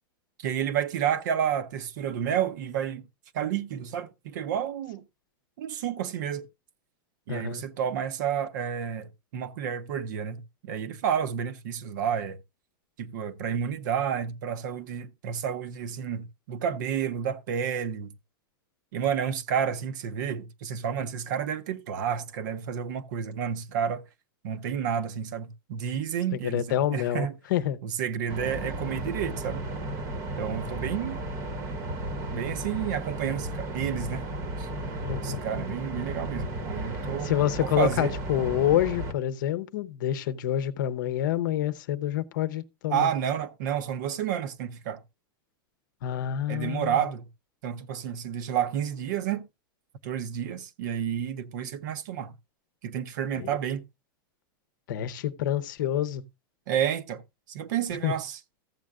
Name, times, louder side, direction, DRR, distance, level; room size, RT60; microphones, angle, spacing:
voice 1, 0.4-3.0 3.3-5.0 5.6-6.5 7.3-12.4 13.0-18.1 18.9-24.0 24.4-27.3 27.8-29.6 30.4-31.2 32.3-34.2 34.6-34.7 35.2-37.3 37.6-38.1 42.9-45.0 46.5-47.2 47.6-49.4 50.0-52.3 52.8-53.8 56.7-57.2 57.5-58.4, right 8 dB, 55° right, 0.8 m, -30 dB
voice 2, 7.3-7.6 26.3-27.8 35.0-35.4 37.2-43.1 46.0-47.0 53.3-53.6 54.9-56.2 58.0-58.1, left 12 dB, 60° left, 0.7 m, -27 dB
sound 1, 28.3-39.1, right 1 dB, 25° right, 0.9 m, -34 dB
14.5 x 7.6 x 2.4 m
supercardioid pair, 175°, 12 cm